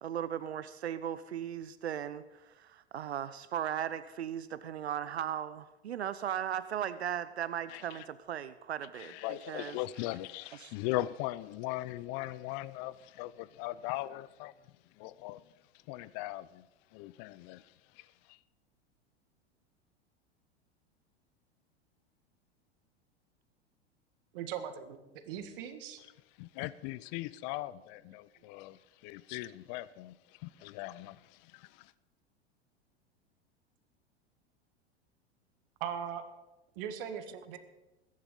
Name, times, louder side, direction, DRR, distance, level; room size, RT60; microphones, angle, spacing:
voice 1, 0.0-9.1 9.5-9.8 10.6-10.7, right 9 dB, 80° right, 0.6 m, -37 dB
voice 2, 7.7-8.1 8.9-14.5 15.0-15.4 15.9-16.7 16.9-18.4 26.4-31.9, left 16 dB, 45° left, 0.5 m, -39 dB
voice 3, 24.3-25.0 25.2-26.0 35.8-36.3 36.8-37.6, right 8 dB, 55° right, 1.8 m, -39 dB
21.0 x 10.5 x 3.9 m
figure-of-eight pair, 85°, 32 cm